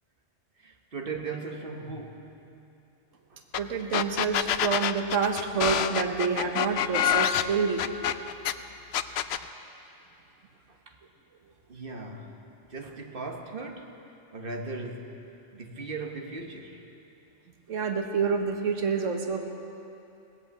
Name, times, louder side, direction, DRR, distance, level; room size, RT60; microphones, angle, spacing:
voice 1, 0.6-2.3 3.3-3.4 10.7-11.0 11.7-12.4 12.7-13.9 14.3-15.2 15.5-16.9, right 3 dB, 45° right, 3 dB, 1.3 m, -38 dB
sound 1, 3.5-3.6 3.9-8.5 8.9-9.4, left 10 dB, 65° left, 0.7 m, -26 dB
voice 2, 3.6-7.9 17.7-19.4, right 5 dB, 75° right, 4 dB, 1.4 m, -28 dB
18.5 x 8.4 x 8.3 m, 2.8 s
omnidirectional pair, 1.3 m